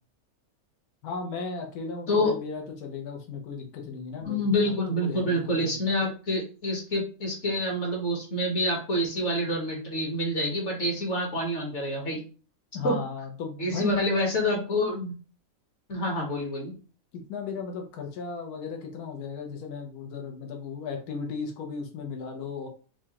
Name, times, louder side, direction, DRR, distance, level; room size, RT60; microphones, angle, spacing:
voice 1, 1.0-4.7 5.0-5.7 12.7-14.0 17.1-22.7, left 5 dB, 90° left, 2 dB, 1.3 m, -36 dB
voice 2, 4.2-12.2 12.8-12.9 13.6-15.1 15.9-16.7, left 1 dB, 55° left, 0 dB, 1.2 m, -27 dB
4.7 x 2.3 x 2.8 m, 0.37 s
omnidirectional pair, 1.6 m